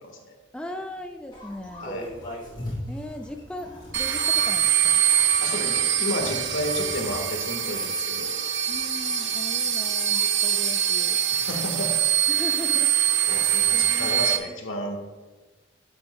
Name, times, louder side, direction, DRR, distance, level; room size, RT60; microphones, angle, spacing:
voice 1, 0.0-0.3 1.8-2.1 5.4-8.3 11.3-11.9 13.3-15.0, left 1 dB, 80° left, 3 dB, 1.5 m, -32 dB
voice 2, 0.5-2.1 2.9-5.0 8.7-11.2 12.3-14.6, left 1 dB, 5° left, 5 dB, 0.3 m, -39 dB
sound 1, 1.3-12.0, left 1 dB, 25° left, 2.8 m, -42 dB
sound 2, 3.9-14.4, right 9 dB, 65° right, 0.7 m, -24 dB
11.5 x 7.6 x 2.2 m, 1.3 s
head